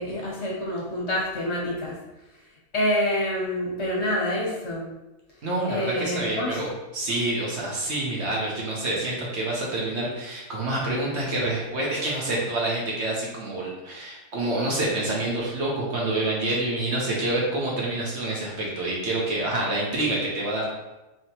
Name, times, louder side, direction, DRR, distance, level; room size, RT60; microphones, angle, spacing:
voice 1, 0.0-1.9 2.7-4.9 5.7-6.6, left 1 dB, 55° left, -3 dB, 1.0 m, -27 dB
voice 2, 5.4-20.7, right 2 dB, 55° right, -4 dB, 1.1 m, -27 dB
4.8 x 2.9 x 2.9 m, 1.0 s
omnidirectional pair, 1.5 m